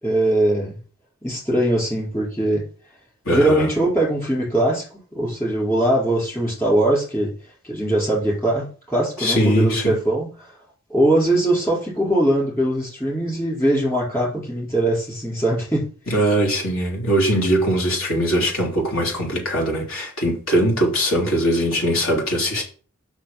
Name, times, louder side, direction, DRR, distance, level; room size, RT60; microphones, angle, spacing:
voice 1, 0.0-0.7 1.2-2.6 3.3-4.9 5.1-7.3 7.6-10.5 10.9-15.8, right 1 dB, 10° left, 4.4 m, -21 dB
voice 2, 3.2-3.7 9.2-9.9 16.1-22.6, equal, 65° left, 3.4 m, -21 dB
6.5 x 6.2 x 5.9 m
head